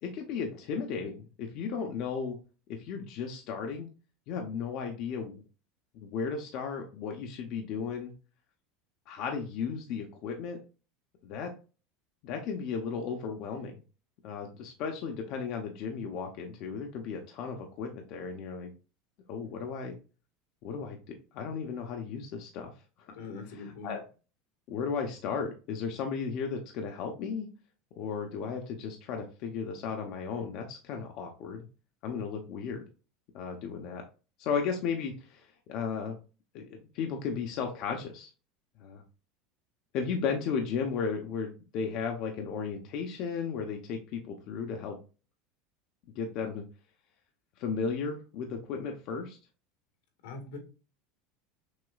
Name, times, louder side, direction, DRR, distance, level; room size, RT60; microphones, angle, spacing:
voice 1, 0.0-2.4 2.7-3.9 4.3-5.4 5.9-8.1 9.1-10.6 11.2-11.5 12.2-13.8 14.2-18.7 19.3-19.9 20.6-21.0 21.3-22.7 23.1-23.2 23.8-24.0 24.7-27.5 28.0-31.6 32.0-32.8 33.3-34.0 34.4-36.2 36.5-38.3 38.8-39.0 39.9-45.0 46.1-46.6 47.6-49.4, left 6 dB, 55° left, 3 dB, 0.7 m, -35 dB
voice 2, 23.1-24.0 50.2-50.6, left 3 dB, 90° left, 4 dB, 1.6 m, -42 dB
6.2 x 2.9 x 2.3 m, 0.34 s
supercardioid pair, 145°, 0 cm